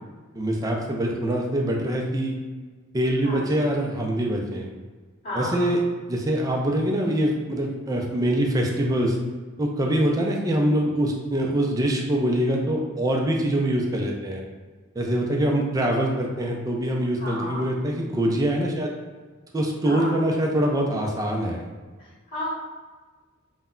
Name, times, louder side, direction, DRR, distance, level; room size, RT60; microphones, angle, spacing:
voice 1, 0.3-2.3 2.9-4.7 5.3-5.8 6.1-9.2 9.6-14.4 15.0-19.0 19.5-21.7, right 1 dB, 15° right, 0 dB, 0.3 m, -24 dB
voice 2, 3.2-3.6 5.2-5.7 17.2-17.6 19.8-20.2 22.0-22.5, left 1 dB, 35° left, -10 dB, 0.8 m, -32 dB
2.1 x 2.1 x 3.6 m, 1.4 s
head